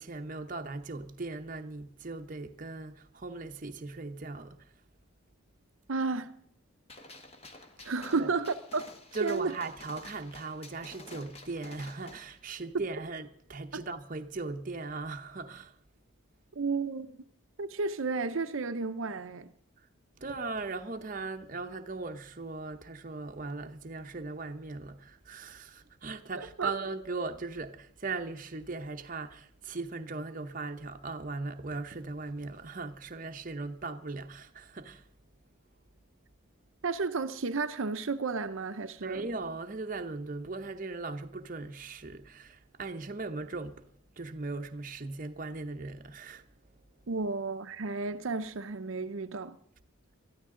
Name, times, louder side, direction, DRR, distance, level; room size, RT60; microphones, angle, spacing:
voice 1, 0.0-4.7 7.8-8.3 9.1-15.8 20.2-35.1 39.0-43.8 44.2-46.4, right 3 dB, 40° right, 0.8 m, -38 dB
voice 2, 5.9-6.3 7.8-8.8 9.2-9.5 16.6-17.2 17.6-19.5 26.3-26.7 36.8-39.3 47.1-49.6, right 4 dB, 70° right, 0.7 m, -32 dB
Gunshot gunfire, 6.9-12.3, left 2 dB, 30° left, 1.4 m, -50 dB
21.5 x 13.5 x 3.8 m
head